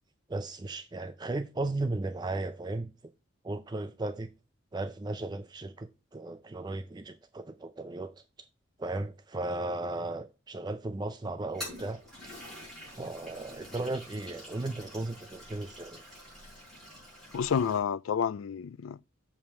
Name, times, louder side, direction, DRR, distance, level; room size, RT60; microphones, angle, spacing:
voice 1, 0.3-2.9 3.4-4.3 4.7-8.5 8.8-12.0 12.9-16.0, right 2 dB, 20° right, 0.3 m, -36 dB
Toilet flush, 11.4-17.8, equal, ahead, 5.0 m, -46 dB
voice 2, 17.3-19.0, left 7 dB, 80° left, 0.4 m, -29 dB
7.2 x 4.8 x 6.0 m
head